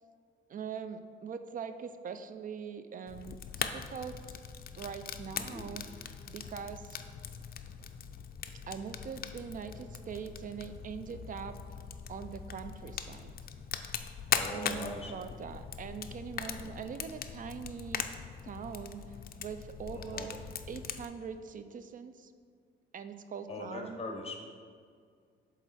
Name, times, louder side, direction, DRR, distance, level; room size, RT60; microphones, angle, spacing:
voice 1, 0.5-4.4 4.8-5.8 6.3-7.0 8.7-11.6 12.1-13.3 14.5-18.1 18.4-20.4 20.7-22.3 22.9-24.0, right 6 dB, 45° right, 10 dB, 0.4 m, -42 dB
Fire, 3.1-21.1, left 8 dB, 50° left, 0.4 m, -40 dB
voice 2, 5.3-5.7 14.3-15.2 16.4-16.8 19.9-20.3 23.5-24.4, left 2 dB, 30° left, 2 dB, 1.1 m, -42 dB
7.1 x 4.0 x 4.2 m, 2.1 s
cardioid pair, 90°, 20 cm